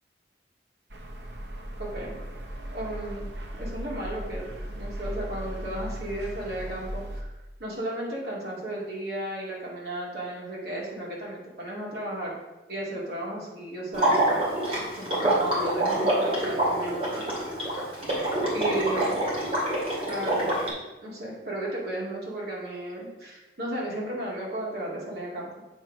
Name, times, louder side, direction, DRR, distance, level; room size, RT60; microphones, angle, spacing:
sound 1, 0.9-7.2, right 1 dB, 85° right, 1.0 m, -37 dB
voice 1, 1.8-2.2 2.7-3.3 3.6-7.3 7.6-12.3 12.7-14.5 14.7-17.2 17.5-18.0 18.5-19.1 20.1-25.5, right 1 dB, 65° right, -4 dB, 2.4 m, -34 dB
Water / Liquid, 13.9-20.7, right 1 dB, 35° right, 2.4 m, -26 dB
7.7 x 4.4 x 5.3 m, 1.1 s
head